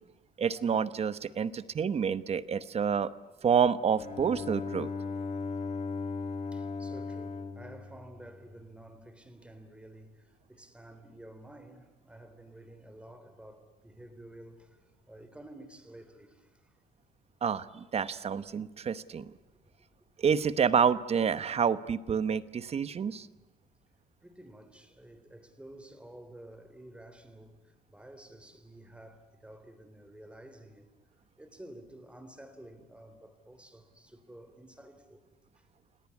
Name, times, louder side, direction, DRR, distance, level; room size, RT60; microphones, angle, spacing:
voice 1, 0.4-3.1 3.4-4.9 17.4-19.3 20.2-23.3, right 7 dB, 35° right, 1.0 m, -28 dB
Bowed string instrument, 4.0-8.8, left 4 dB, 45° left, 2.5 m, -37 dB
voice 2, 6.5-16.8 19.2-19.3 24.2-30.9 31.4-35.2 35.6-35.7, right 1 dB, 5° right, 3.5 m, -51 dB
30.0 x 18.0 x 9.7 m
cardioid pair, 110°, 17 cm